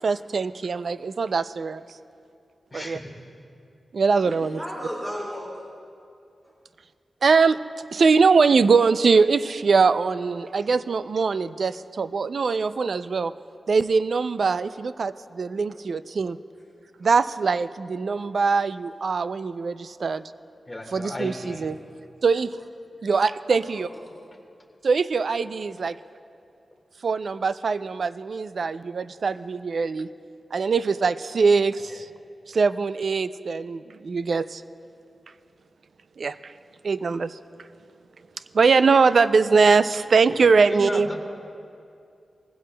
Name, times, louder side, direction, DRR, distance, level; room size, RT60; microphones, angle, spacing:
voice 1, 0.0-1.8 2.7-3.0 3.9-4.6 7.2-7.6 7.9-13.3 13.7-16.4 17.0-20.2 20.9-21.8 22.2-22.6 23.0-23.9 24.8-26.0 27.0-30.1 30.5-32.1 32.5-34.6 36.2-36.5 36.8-37.4 38.5-41.1, right 4 dB, 65° right, 14 dB, 0.3 m, -22 dB
voice 2, 2.7-3.1 20.7-21.7 40.3-41.1, left 1 dB, 20° left, 0 dB, 1.6 m, -34 dB
voice 3, 4.2-5.6 21.6-22.0 23.6-23.9, equal, 20° right, -7 dB, 3.4 m, -35 dB
19.5 x 16.0 x 2.2 m, 2.5 s
wide cardioid pair, 115°, 0 cm